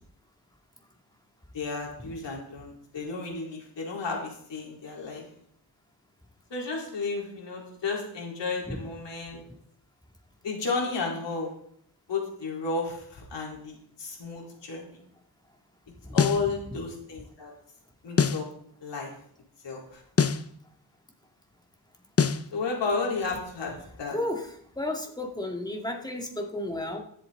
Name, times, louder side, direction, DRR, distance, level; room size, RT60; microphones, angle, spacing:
voice 1, 1.5-5.2 6.5-9.4 10.4-11.5 12.1-15.0 16.1-17.5 18.0-18.5 18.8-19.1 19.6-20.0 22.5-23.7 24.0-24.2, left 4 dB, 90° left, -1 dB, 4.2 m, -32 dB
sound 1, 16.2-16.5 18.2-18.5 20.2-20.5 22.2-22.5, left 6 dB, 35° left, 0.8 m, -23 dB
voice 2, 24.1-27.0, left 1 dB, 10° left, 2 dB, 2.3 m, -33 dB
22.0 x 7.7 x 4.0 m, 0.68 s
wide cardioid pair, 100°, 42 cm